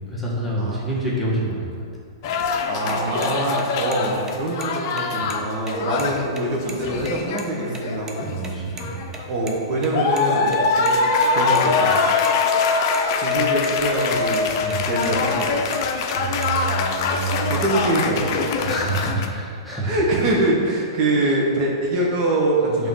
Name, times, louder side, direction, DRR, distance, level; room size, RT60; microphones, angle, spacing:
voice 1, 0.1-1.8 8.2-9.1 14.6-14.9 16.1-17.7 18.6-19.9 21.2-21.4 22.6-22.9, right 2 dB, ahead, -8 dB, 1.5 m, -27 dB
sound 1, 2.2-6.3 6.6-8.4 8.8-9.6 9.9-19.3, left 4 dB, 50° left, 0.6 m, -23 dB
sound 2, 2.7-7.8 8.1-8.2 8.4-8.5 8.8-8.9 9.1-9.2 9.5-9.6 9.8-10.9 11.2-11.6 11.9-12.7 12.9-13.4 13.6-14.1 14.3-14.4 14.7-15.1 15.4-16.6, right 4 dB, 20° right, 0.7 m, -37 dB
voice 2, 2.7-8.3 9.3-11.0 11.3-12.0 13.1-14.5 14.8-15.7 17.5-18.4 19.8-22.9, right 2 dB, 40° right, -3 dB, 1.2 m, -24 dB
5.1 x 3.7 x 5.6 m, 2.2 s
hypercardioid pair, 115°, 2 cm